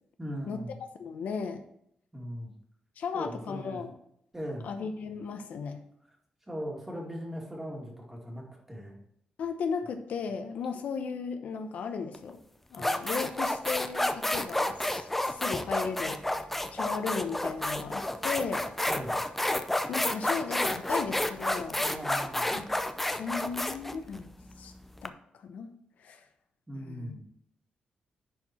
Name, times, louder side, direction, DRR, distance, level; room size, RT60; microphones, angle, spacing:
voice 1, 0.2-0.8 2.1-2.6 3.1-3.8 4.3-4.7 6.5-9.0 12.8-12.9 18.9-19.2 21.8-22.7 26.7-27.2, equal, 10° right, -2 dB, 2.3 m, -39 dB
voice 2, 1.0-1.6 3.0-4.0 4.6-5.8 9.4-12.4 12.7-18.7 19.7-21.8 23.1-24.7 25.0-25.7 26.0-26.2 26.7-27.1, left 5 dB, 75° left, 7 dB, 0.8 m, -36 dB
sound 1, 12.1-12.3 12.7-25.1, left 1 dB, 10° left, 0.5 m, -30 dB
10.5 x 4.6 x 4.3 m, 0.71 s
wide cardioid pair, 140°, 3 cm